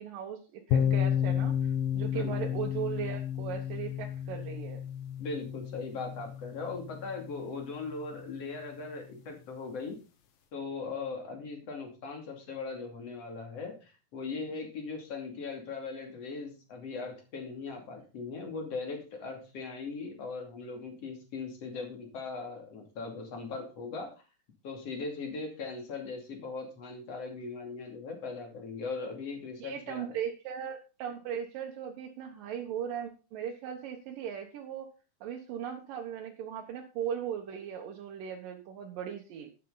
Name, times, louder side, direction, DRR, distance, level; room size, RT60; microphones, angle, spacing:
voice 1, 0.0-4.8 29.6-34.9 35.2-39.5, right 8 dB, 80° right, 2 dB, 2.9 m, -38 dB
sound 1, 0.7-8.4, left 9 dB, 85° left, 3.2 m, -32 dB
voice 2, 2.1-2.5 5.2-10.0 10.5-24.1 24.6-30.2, left 4 dB, 45° left, 3 dB, 3.5 m, -39 dB
11.5 x 10.0 x 4.0 m, 0.32 s
omnidirectional pair, 3.9 m